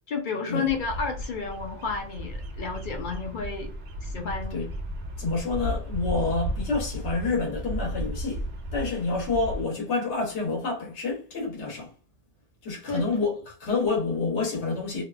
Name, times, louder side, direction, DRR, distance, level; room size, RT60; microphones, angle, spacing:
voice 1, 0.1-3.7 4.0-4.6 12.9-13.1, left 5 dB, 55° left, 0.6 m, -31 dB
Bird vocalization bird call bird song, 0.7-9.7, equal, 65° right, 0.9 m, -34 dB
voice 2, 5.2-8.5 8.7-11.9 12.6-15.1, left 3 dB, 75° left, 1.2 m, -28 dB
2.6 x 2.3 x 2.2 m
omnidirectional pair, 1.2 m